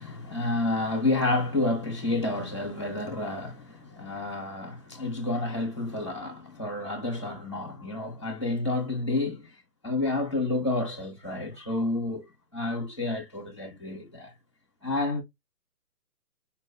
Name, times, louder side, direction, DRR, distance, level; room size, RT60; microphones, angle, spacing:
voice 1, 0.0-9.5 9.8-14.3 14.8-15.2, left 2 dB, 20° left, 0.7 m, -30 dB
4.6 x 2.5 x 2.6 m
hypercardioid pair, 175°, 46 cm